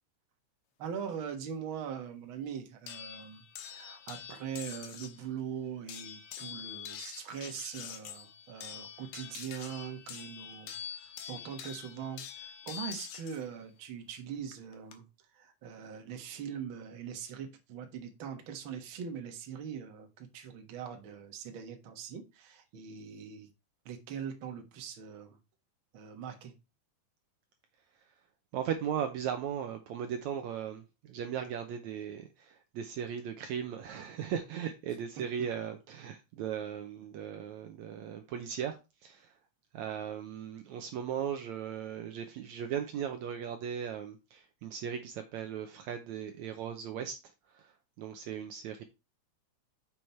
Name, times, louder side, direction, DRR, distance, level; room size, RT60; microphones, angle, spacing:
voice 1, 0.8-15.1 15.3-23.5 23.9-25.4 25.9-26.5, right 7 dB, 50° right, 1.8 m, -42 dB
sound 1, 2.9-5.2 5.9-13.4 14.5-14.9, left 9 dB, 90° left, 2.7 m, -45 dB
voice 2, 28.5-39.3 39.7-47.2 47.5-48.8, right 8 dB, 70° right, 2.0 m, -37 dB
7.0 x 6.4 x 4.4 m
omnidirectional pair, 3.6 m